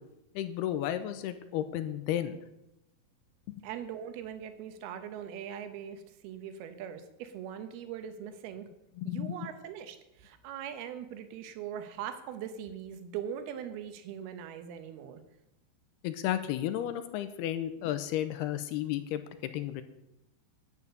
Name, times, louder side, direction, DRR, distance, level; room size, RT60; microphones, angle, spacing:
voice 1, 0.4-2.4 3.5-3.6 9.0-9.4 16.0-19.8, left 12 dB, 85° left, 10 dB, 2.8 m, -33 dB
voice 2, 3.6-8.7 9.0-15.2, right 9 dB, 75° right, 9 dB, 3.0 m, -41 dB
11.0 x 9.8 x 6.8 m, 0.87 s
omnidirectional pair, 4.7 m